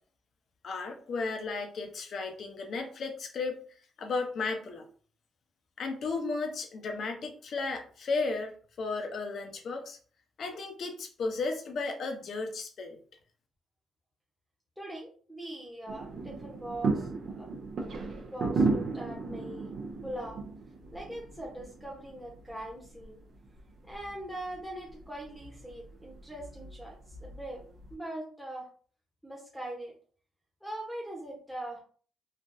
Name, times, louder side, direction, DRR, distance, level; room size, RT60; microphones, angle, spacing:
voice 1, 0.6-3.7 4.0-4.9 5.8-8.5 8.8-10.0 10.4-13.0, left 3 dB, 60° left, 4 dB, 0.7 m, -34 dB
voice 2, 14.8-17.5 18.0-19.7 20.0-20.4 20.9-23.2 23.8-27.6 27.9-28.7 29.2-29.9 30.6-31.8, right 1 dB, ahead, -2 dB, 0.9 m, -41 dB
sound 1, 15.9-27.9, right 3 dB, 65° right, 0.7 m, -35 dB
3.3 x 2.4 x 2.6 m, 0.43 s
cardioid pair, 90°, 0 cm